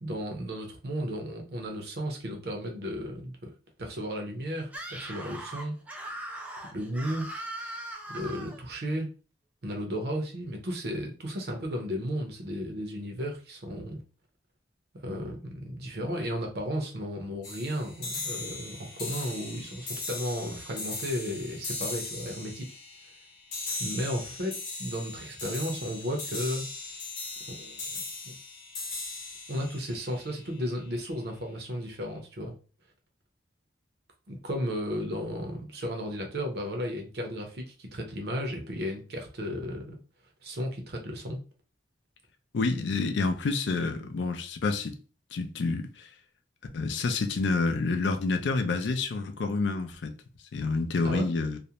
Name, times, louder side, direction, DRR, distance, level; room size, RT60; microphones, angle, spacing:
voice 1, 0.0-3.5 3.8-5.7 6.7-7.3 8.1-9.1 9.6-14.0 15.0-22.7 23.8-26.6 27.5-28.4 29.5-32.5 34.3-40.0 40.4-41.4 51.0-51.3, equal, 60° right, 0.6 m, -34 dB
Screaming, 4.7-8.6, right 1 dB, 10° right, 0.3 m, -40 dB
sound 1, 17.4-30.9, left 3 dB, 45° left, 0.8 m, -38 dB
voice 2, 42.5-44.9 45.3-46.1 46.7-50.1 50.5-51.6, left 3 dB, 75° left, 0.4 m, -28 dB
2.4 x 2.1 x 2.8 m
head